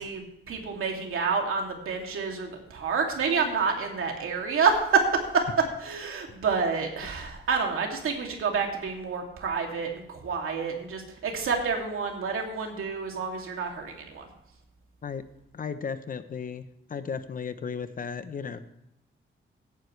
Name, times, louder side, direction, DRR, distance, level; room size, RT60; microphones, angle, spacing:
voice 1, 0.0-5.0 5.3-5.4 5.8-14.3, right 5 dB, 85° right, 2 dB, 2.5 m, -28 dB
voice 2, 15.5-18.6, left 6 dB, 40° left, 11 dB, 0.7 m, -35 dB
16.0 x 9.5 x 3.2 m, 0.85 s
wide cardioid pair, 160°, 21 cm